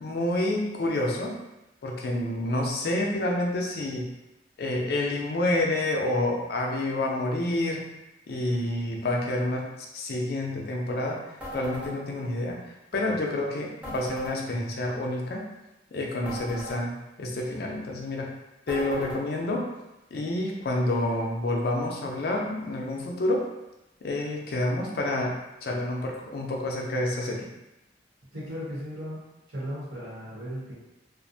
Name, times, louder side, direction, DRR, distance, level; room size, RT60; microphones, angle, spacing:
voice 1, 0.0-1.4 1.8-4.1 4.6-7.8 8.3-9.7 9.9-11.2 11.5-15.4 15.9-16.9 17.2-18.3 18.7-19.7 20.1-23.4 24.0-27.5, left 1 dB, 55° left, 0 dB, 0.4 m, -28 dB
sound 1, 11.4-11.9 13.8-14.4 16.2-16.8 18.7-19.2, equal, 5° right, 0.7 m, -38 dB
voice 2, 28.3-29.2 29.5-30.7, equal, 75° right, -10 dB, 1.0 m, -36 dB
2.4 x 2.0 x 2.6 m, 0.94 s
head